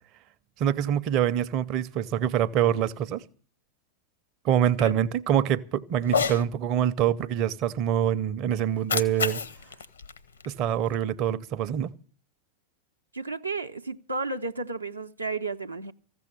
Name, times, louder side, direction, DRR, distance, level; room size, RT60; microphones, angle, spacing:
voice 1, 0.6-3.2 4.4-9.4 10.5-11.9, right 10 dB, 40° right, 0.6 m, -25 dB
Cat, 6.0-6.4 8.6-11.0, left 6 dB, 75° left, 0.9 m, -30 dB
voice 2, 13.1-15.9, right 3 dB, 80° right, 0.6 m, -32 dB
15.0 x 7.0 x 10.0 m
figure-of-eight pair, 90°, 0 cm